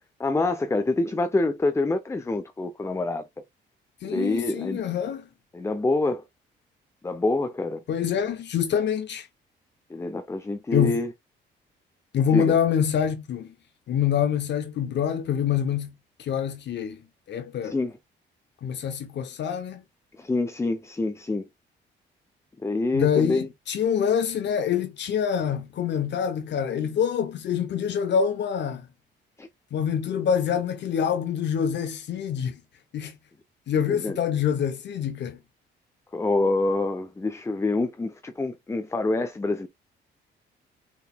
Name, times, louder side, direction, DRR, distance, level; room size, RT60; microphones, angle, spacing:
voice 1, 0.2-3.2 4.0-4.8 5.5-6.2 7.0-7.8 9.9-11.1 12.3-12.6 17.7-17.9 20.2-21.4 22.6-23.5 29.4-29.5 33.9-34.2 36.1-39.7, left 2 dB, 15° left, 0.6 m, -26 dB
voice 2, 4.0-5.3 7.9-9.3 10.7-11.0 12.1-13.5 13.9-15.9 16.2-17.0 17.3-17.8 18.6-19.8 22.9-28.9 29.7-32.6 32.9-33.2 33.7-35.4, left 8 dB, 60° left, 0.8 m, -26 dB
5.9 x 3.9 x 2.2 m
cardioid pair, 90°, 20 cm